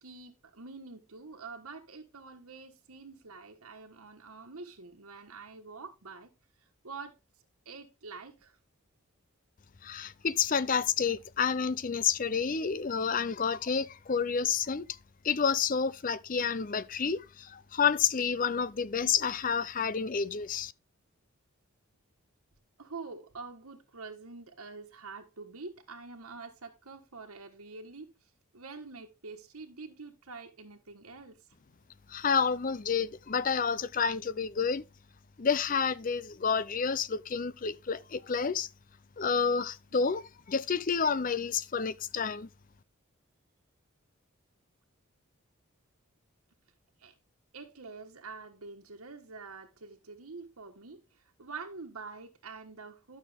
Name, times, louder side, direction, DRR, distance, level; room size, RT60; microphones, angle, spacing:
voice 1, 0.0-6.3 6.8-7.1 7.6-8.6 22.8-28.1 28.5-31.5 47.0-47.1 47.5-53.2, right 4 dB, 85° right, 1.4 m, -46 dB
voice 2, 9.8-14.9 15.2-20.7 32.1-34.8 35.4-38.7 39.2-42.5, left 6 dB, 40° left, 0.5 m, -29 dB
12.0 x 6.4 x 3.5 m
head